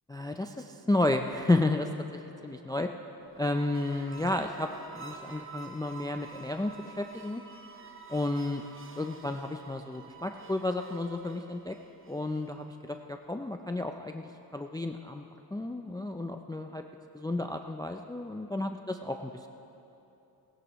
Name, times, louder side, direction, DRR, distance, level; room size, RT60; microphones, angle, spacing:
voice 1, 0.1-1.9 2.4-2.9 3.4-7.4 8.1-8.6 9.0-11.8 12.1-15.2 15.5-16.8 17.1-18.8 19.0-19.5, left 2 dB, 10° left, 5 dB, 0.3 m, -32 dB
sound 1, 3.2-12.6, right 4 dB, 35° right, 0.8 m, -49 dB
19.0 x 16.0 x 3.0 m, 2.9 s
wide cardioid pair, 165°, 38 cm